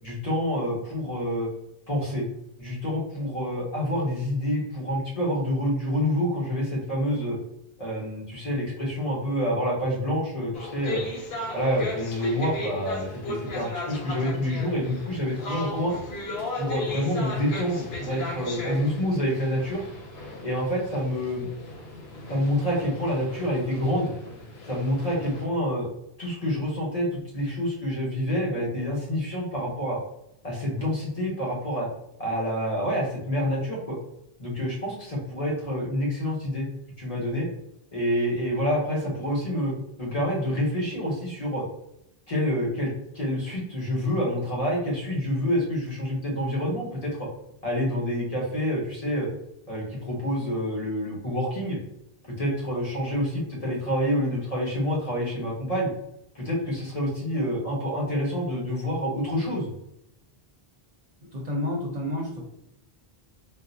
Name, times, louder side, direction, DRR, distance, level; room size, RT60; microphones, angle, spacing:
voice 1, 0.0-1.5 1.9-2.2 2.6-7.4 7.8-11.0 11.5-15.9 16.5-19.8 20.4-21.5 22.3-24.1 24.7-25.9 26.2-30.0 30.4-31.9 32.2-34.0 34.4-36.7 37.0-37.5 37.9-39.7 40.0-41.6 42.3-47.3 47.6-49.3 49.7-51.8 52.4-55.9 56.3-59.7, equal, 40° left, -4 dB, 1.0 m, -27 dB
sound 1, 10.5-25.5, left 2 dB, 80° left, 0.9 m, -36 dB
voice 2, 61.3-62.4, left 1 dB, 50° right, -2 dB, 0.7 m, -30 dB
3.6 x 2.0 x 2.6 m, 0.80 s
omnidirectional pair, 1.0 m